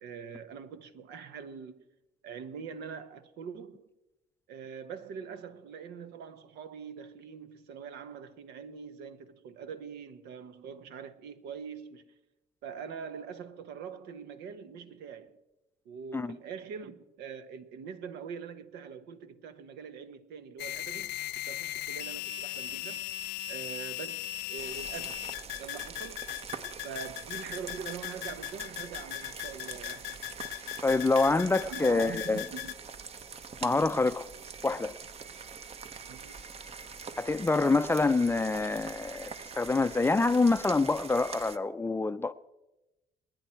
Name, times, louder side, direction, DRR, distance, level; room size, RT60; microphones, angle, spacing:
voice 1, 0.0-1.8 2.2-3.9 4.5-12.1 12.6-15.4 15.8-21.2 21.4-23.0 23.5-25.2 25.6-26.3 26.8-30.2 31.5-32.7 36.1-36.4, right 6 dB, 80° right, 1.1 m, -43 dB
sound 1, 20.6-32.7, left 17 dB, 80° left, 0.6 m, -38 dB
sound 2, 24.6-41.6, right 5 dB, 35° right, 0.9 m, -44 dB
voice 2, 30.8-32.4 33.6-34.3 34.6-35.0 37.2-42.3, left 3 dB, 15° left, 0.4 m, -26 dB
28.0 x 10.0 x 4.5 m
cardioid pair, 110°, 17 cm